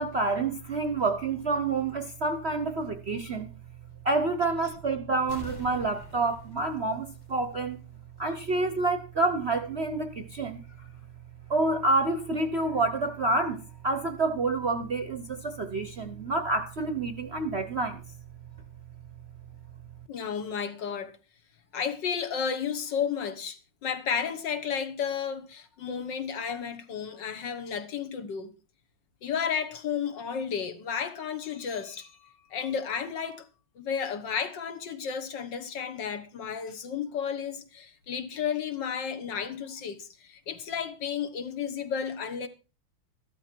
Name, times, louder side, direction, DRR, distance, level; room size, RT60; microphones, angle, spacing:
voice 1, 0.0-3.5 4.1-7.0 7.3-7.7 8.2-10.1 10.4-10.5 11.5-13.6 13.8-15.2 15.6-17.9, right 3 dB, 45° right, 0.9 m, -28 dB
sound 1, 5.3-7.9 8.2-8.3, left 3 dB, 90° left, 3.3 m, -46 dB
voice 2, 20.1-21.2 21.7-28.5 29.2-33.5 33.8-42.5, left 7 dB, 65° left, 1.8 m, -32 dB
14.0 x 12.5 x 4.4 m
omnidirectional pair, 2.1 m